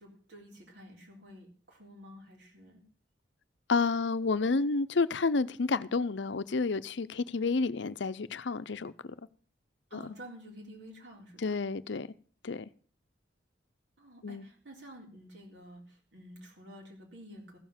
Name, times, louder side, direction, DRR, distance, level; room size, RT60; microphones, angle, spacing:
voice 1, 0.0-2.8 9.9-11.5 14.0-17.6, equal, 75° right, 3.9 m, -50 dB
voice 2, 3.7-8.9 9.9-10.0 11.4-12.1 12.4-12.7 14.2-14.5, left 4 dB, 75° left, 0.6 m, -30 dB
15.0 x 7.2 x 7.2 m
head